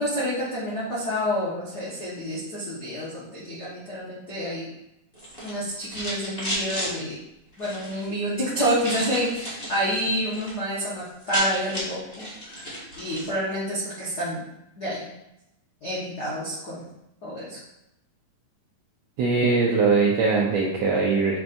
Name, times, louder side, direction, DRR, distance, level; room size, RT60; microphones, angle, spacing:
voice 1, 0.0-4.7 5.4-7.2 7.6-14.4 14.8-15.0 15.8-16.9 17.2-17.6, equal, 80° left, -8 dB, 0.8 m, -28 dB
sound 1, 5.1-6.9 7.5-8.0 8.8-9.8 10.1-10.5 10.8-10.9 11.1-13.3, equal, 40° left, 0.7 m, -33 dB
voice 2, 19.2-21.4, right 4 dB, 80° right, -3 dB, 1.5 m, -21 dB
6.5 x 5.8 x 2.6 m, 0.87 s
omnidirectional pair, 4.1 m